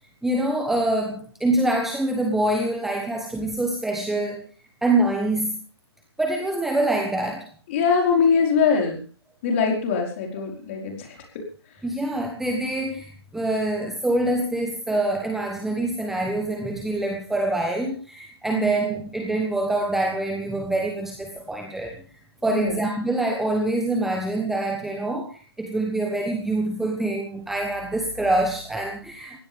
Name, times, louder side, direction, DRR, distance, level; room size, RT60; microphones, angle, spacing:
voice 1, 0.2-4.5 4.8-5.6 6.2-7.5 11.8-22.0 22.4-29.4, right 2 dB, ahead, 3 dB, 1.1 m, -25 dB
voice 2, 7.7-9.0 9.4-11.4 18.5-18.7 22.5-22.8, left 5 dB, 30° left, 2 dB, 5.0 m, -22 dB
21.5 x 17.0 x 3.6 m, 0.37 s
hypercardioid pair, 155°, 14 cm